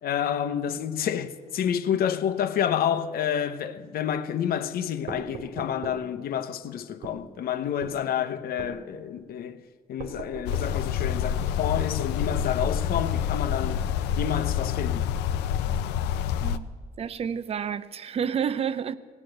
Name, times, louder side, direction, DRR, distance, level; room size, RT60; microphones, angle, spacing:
voice 1, 0.0-9.6 9.9-13.9 14.2-15.1, left 9 dB, 60° left, 0.9 m, -29 dB
sound 1, 5.1-6.0 7.0-7.2 7.8-8.0 8.6-8.8 10.0-10.7 12.0-12.8, right 4 dB, 80° right, 2.6 m, -39 dB
sound 2, 10.5-16.6, left 9 dB, 90° left, 0.6 m, -27 dB
voice 2, 17.0-19.0, right 7 dB, 35° right, 0.6 m, -29 dB
18.5 x 8.7 x 7.8 m
cardioid pair, 110°, 17 cm